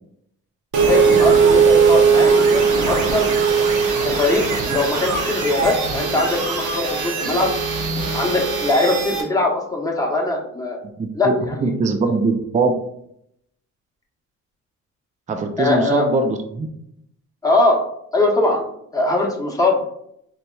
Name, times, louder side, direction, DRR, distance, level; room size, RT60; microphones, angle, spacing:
sound 1, 0.7-9.2, right 5 dB, 75° right, 0.9 m, -19 dB
voice 1, 0.8-3.3 4.0-7.6 8.1-10.8 11.1-11.7 15.6-16.1 17.4-17.8 18.1-18.6 18.9-19.8, left 2 dB, 10° left, -2 dB, 0.9 m, -21 dB
voice 2, 11.0-12.7 15.3-16.7, right 3 dB, 25° right, 5 dB, 0.4 m, -21 dB
4.3 x 2.8 x 2.3 m, 0.73 s
cardioid pair, 90°, 30 cm